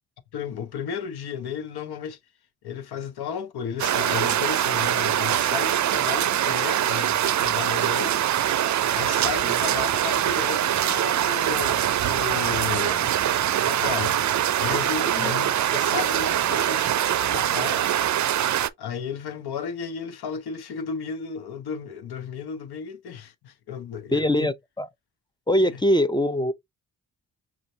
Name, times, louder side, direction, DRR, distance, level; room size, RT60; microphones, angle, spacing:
voice 1, 0.3-2.2 2.6-8.3 8.9-13.1 13.7-14.2 14.6-17.8 18.8-24.5 25.6-25.8, left 7 dB, 80° left, 0.9 m, -34 dB
sound 1, 3.8-18.7, right 11 dB, 50° right, 0.5 m, -23 dB
voice 2, 24.1-24.9 25.5-26.5, left 1 dB, 10° left, 0.4 m, -22 dB
6.3 x 2.4 x 2.7 m
cardioid pair, 90°, 38 cm